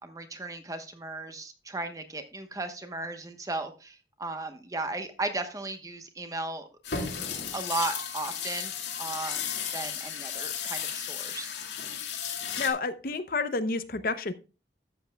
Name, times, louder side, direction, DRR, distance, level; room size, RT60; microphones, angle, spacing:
voice 1, 0.0-6.7 7.5-8.7 9.0-11.5, right 2 dB, 20° right, 8 dB, 1.0 m, -36 dB
sound 1, 6.8-12.7, left 7 dB, 80° left, 2.1 m, -34 dB
voice 2, 12.6-14.3, left 3 dB, 50° left, 11 dB, 0.6 m, -30 dB
13.0 x 7.8 x 2.2 m, 0.32 s
head